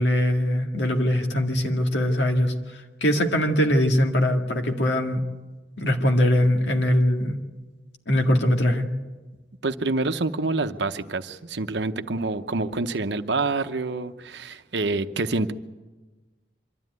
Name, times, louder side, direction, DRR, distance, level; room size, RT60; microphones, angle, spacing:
voice 1, 0.0-2.5 3.0-5.2 5.8-7.4 8.1-8.9, left 1 dB, 75° left, 4 dB, 2.0 m, -21 dB
voice 2, 9.6-15.5, right 3 dB, 75° right, 10 dB, 0.9 m, -27 dB
24.5 x 13.0 x 9.4 m, 1.2 s
head